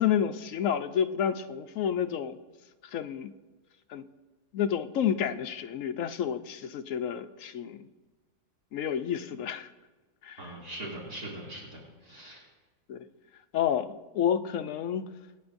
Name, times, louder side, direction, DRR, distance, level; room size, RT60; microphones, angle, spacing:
voice 1, 0.0-2.4 2.8-3.3 3.9-4.0 4.5-7.9 8.7-9.7 10.2-10.5 12.9-13.1 13.5-15.1, left 9 dB, 65° left, 9 dB, 0.9 m, -30 dB
voice 2, 10.4-12.4, right 1 dB, 70° right, -5 dB, 3.3 m, -41 dB
25.5 x 9.4 x 2.6 m, 1.3 s
omnidirectional pair, 1.7 m